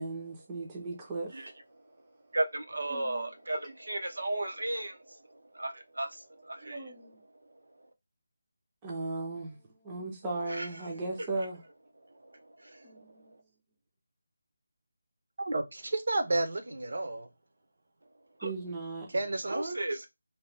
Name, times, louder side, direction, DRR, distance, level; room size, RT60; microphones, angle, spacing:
voice 1, 0.0-1.4 2.9-3.2 6.6-7.2 8.8-9.6 9.8-11.6 12.8-13.3 18.4-19.1, right 3 dB, 10° right, 0.5 m, -37 dB
voice 2, 2.3-6.9 10.5-10.7 12.2-13.0 18.4-18.5 19.4-20.1, right 1 dB, 90° right, 0.8 m, -35 dB
voice 3, 15.4-17.3 19.1-19.8, right 2 dB, 55° right, 0.7 m, -31 dB
2.8 x 2.1 x 3.3 m
figure-of-eight pair, 175°, 0 cm